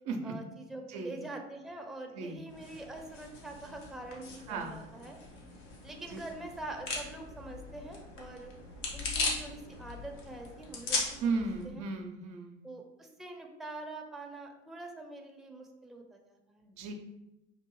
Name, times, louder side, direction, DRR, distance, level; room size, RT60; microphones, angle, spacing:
voice 1, 0.2-5.2 5.8-8.5 8.9-11.8 12.6-16.7, right 2 dB, ahead, 2 dB, 0.6 m, -45 dB
voice 2, 0.9-1.2 2.1-2.4 4.5-4.9 6.1-6.3 11.2-12.6 16.6-16.9, right 4 dB, 60° right, 4 dB, 0.7 m, -35 dB
sound 1, 2.5-11.6, left 3 dB, 85° left, 1.0 m, -39 dB
5.4 x 2.6 x 3.0 m, 0.95 s
hypercardioid pair, 65°, 36 cm